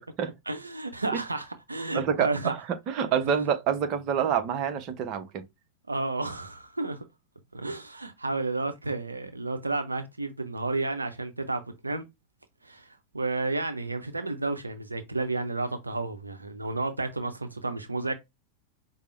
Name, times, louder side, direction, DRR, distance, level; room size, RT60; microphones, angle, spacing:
voice 1, 0.5-2.6 5.9-7.0 7.5-12.0 12.6-18.1, right 3 dB, 80° right, 0.5 m, -31 dB
voice 2, 1.9-2.6 2.9-5.5, right 8 dB, 40° right, 0.7 m, -27 dB
5.1 x 2.0 x 3.2 m
figure-of-eight pair, 90°, 0 cm